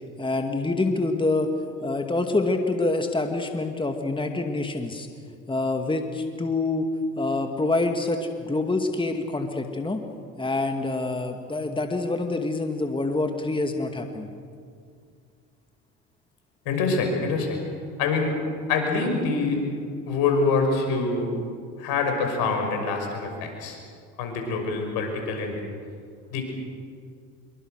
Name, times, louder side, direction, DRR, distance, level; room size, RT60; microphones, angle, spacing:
voice 1, 0.2-1.5 1.8-5.1 5.5-6.9 7.2-10.0 10.4-14.3, left 2 dB, 15° left, 5 dB, 2.3 m, -26 dB
voice 2, 16.7-17.6 18.0-18.3 18.7-19.6 20.1-21.3 21.8-23.8 24.2-25.6 26.3-26.4, left 4 dB, 70° left, 3 dB, 6.0 m, -25 dB
26.0 x 23.5 x 6.6 m, 2.2 s
hypercardioid pair, 65°, 37 cm